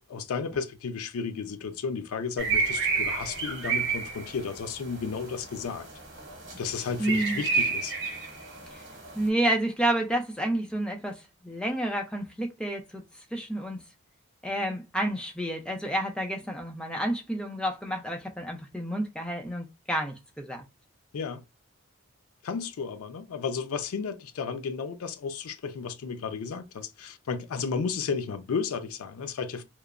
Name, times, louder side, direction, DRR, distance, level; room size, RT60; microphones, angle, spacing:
voice 1, 0.1-5.9 6.6-7.9 21.1-21.4 22.4-29.6, left 5 dB, 90° left, 0.4 m, -33 dB
sound 1, 2.4-9.3, right 4 dB, 55° right, 1.1 m, -31 dB
voice 2, 7.0-7.5 8.7-8.8 9.2-13.0 13.3-13.8 14.4-20.6, right 1 dB, 5° left, 0.4 m, -30 dB
2.9 x 2.1 x 2.4 m
head